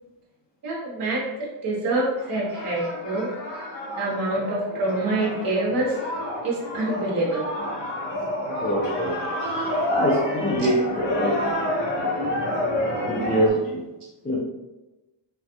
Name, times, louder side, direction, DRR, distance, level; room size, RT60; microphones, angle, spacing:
voice 1, 0.6-1.2 1.6-3.3 4.0-6.0 6.4-7.4, right 2 dB, 45° right, -5 dB, 0.8 m, -26 dB
sound 1, 2.1-13.5, left 1 dB, 60° left, 1.1 m, -29 dB
voice 2, 8.4-9.1 9.9-11.4 13.1-13.8 14.2-14.4, equal, 20° left, -6 dB, 0.6 m, -24 dB
3.3 x 2.3 x 2.8 m, 1.0 s
cardioid pair, 90°, 50 cm